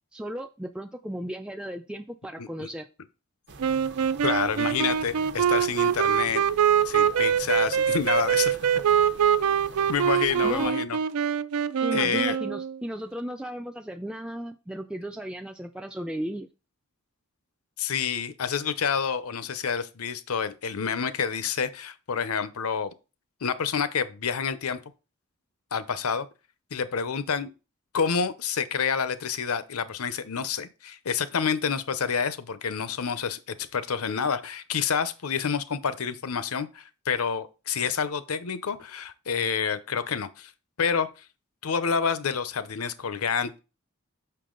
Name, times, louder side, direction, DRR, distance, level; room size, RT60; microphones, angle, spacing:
voice 1, 0.1-2.9 10.4-10.8 11.8-16.5, right 1 dB, 5° right, 0.3 m, -35 dB
voice 2, 2.4-2.7 4.2-6.4 6.8-8.6 9.9-11.0 11.9-12.4 17.8-22.9 23.4-24.8 25.7-26.3 26.7-27.5 27.9-40.5 40.8-41.1 41.6-43.6, left 6 dB, 80° left, 0.7 m, -28 dB
sound 1, 3.5-10.7, right 3 dB, 50° right, 0.7 m, -45 dB
sound 2, 3.6-12.8, right 8 dB, 90° right, 0.4 m, -24 dB
6.8 x 5.8 x 3.8 m
head